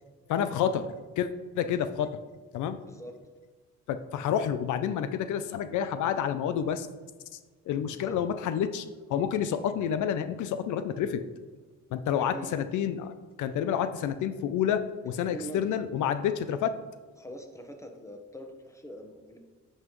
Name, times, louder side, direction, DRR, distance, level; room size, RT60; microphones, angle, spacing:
voice 1, 0.3-1.3 1.6-2.2 2.5-2.8 3.9-6.9 7.7-11.2 11.9-16.8, left 9 dB, 80° left, 11 dB, 0.5 m, -29 dB
voice 2, 12.1-12.6 13.7-13.9 15.0-15.6 17.2-19.4, right 1 dB, 10° left, 4 dB, 1.1 m, -43 dB
9.4 x 5.5 x 3.1 m, 1.4 s
cardioid pair, 90°, 30 cm